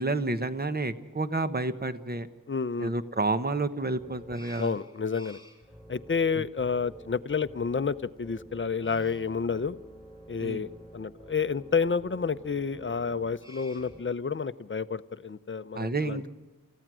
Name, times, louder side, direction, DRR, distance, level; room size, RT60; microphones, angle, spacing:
voice 1, 0.0-2.3 2.8-4.7 6.3-6.5 10.4-10.7 15.7-16.3, right 3 dB, 30° right, 11 dB, 1.1 m, -30 dB
voice 2, 2.5-2.9 4.6-5.4 5.9-9.8 10.3-10.7 10.9-16.2, left 5 dB, 35° left, 14 dB, 0.7 m, -30 dB
sound 1, 3.9-14.0, equal, 10° right, 4.0 m, -49 dB
29.5 x 15.0 x 6.2 m, 1.1 s
wide cardioid pair, 105°, 33 cm